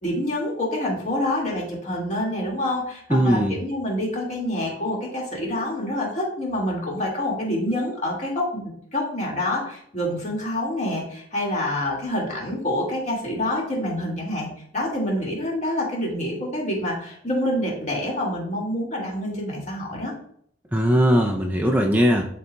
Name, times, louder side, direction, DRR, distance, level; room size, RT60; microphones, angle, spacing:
voice 1, 0.0-20.1, left 1 dB, 40° left, -2 dB, 2.0 m, -27 dB
voice 2, 3.1-3.6 20.7-22.3, equal, 10° right, 1 dB, 0.4 m, -19 dB
11.0 x 4.1 x 2.2 m, 0.65 s
head